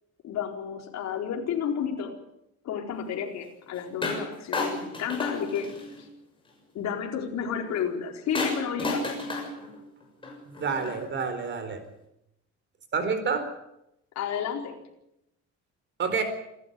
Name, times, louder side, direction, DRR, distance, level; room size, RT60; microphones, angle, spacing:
voice 1, 0.2-2.2 2.6-5.7 6.7-9.1 14.1-14.8, left 7 dB, 65° left, 2 dB, 4.5 m, -31 dB
sound 1, 4.0-4.3 4.5-6.1 8.3-11.1, left 2 dB, 15° left, 6.8 m, -32 dB
voice 2, 10.5-11.8 12.9-13.5 16.0-16.2, right 5 dB, 40° right, 9 dB, 4.4 m, -28 dB
27.0 x 13.0 x 9.4 m, 0.84 s
cardioid pair, 165°, 30 cm